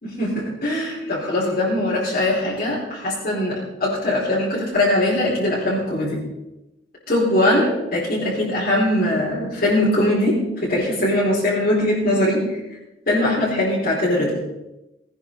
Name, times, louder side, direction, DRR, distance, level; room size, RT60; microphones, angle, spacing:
voice 1, 0.0-6.2 7.1-12.6 13.1-14.3, left 1 dB, 50° left, -10 dB, 5.5 m, -21 dB
21.5 x 10.0 x 4.3 m, 0.97 s
head